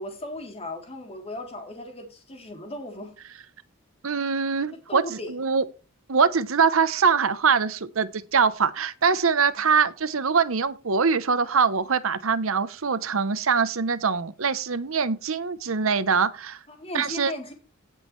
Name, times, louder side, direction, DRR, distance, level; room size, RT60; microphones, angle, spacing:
voice 1, 0.0-3.1 4.9-5.3 16.7-17.5, left 1 dB, 30° left, 3.3 m, -36 dB
voice 2, 4.0-5.6 6.1-16.6 16.9-17.3, right 5 dB, 75° right, 0.9 m, -23 dB
17.5 x 6.4 x 3.2 m
head